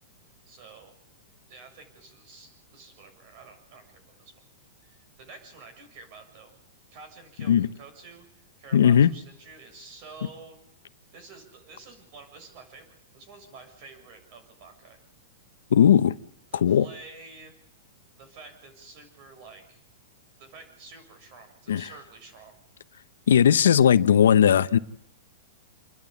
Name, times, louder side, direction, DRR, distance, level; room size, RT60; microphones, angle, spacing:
voice 1, 0.5-0.9 1.5-4.4 4.8-6.5 6.9-10.6 11.1-15.0 16.5-17.5 18.2-19.8 20.4-22.6, right 4 dB, 45° right, 6.9 m, -49 dB
voice 2, 8.7-9.1 15.7-16.1 16.5-16.9 21.7-21.9 23.3-24.8, left 9 dB, 90° left, 0.8 m, -18 dB
29.0 x 11.0 x 8.4 m
hypercardioid pair, 150°, 0 cm